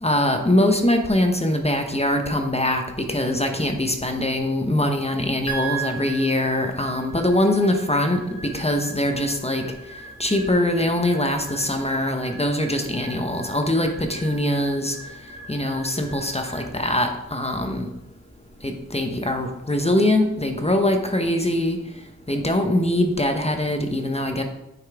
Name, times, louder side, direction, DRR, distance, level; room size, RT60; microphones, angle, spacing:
voice 1, 0.0-9.6 10.2-15.0 15.5-17.9 18.6-21.8 22.3-24.4, left 1 dB, 20° left, 4 dB, 1.0 m, -22 dB
sound 1, 5.5-19.8, right 4 dB, 60° left, 2.0 m, -39 dB
9.5 x 5.4 x 3.6 m, 0.92 s
wide cardioid pair, 60°, 33 cm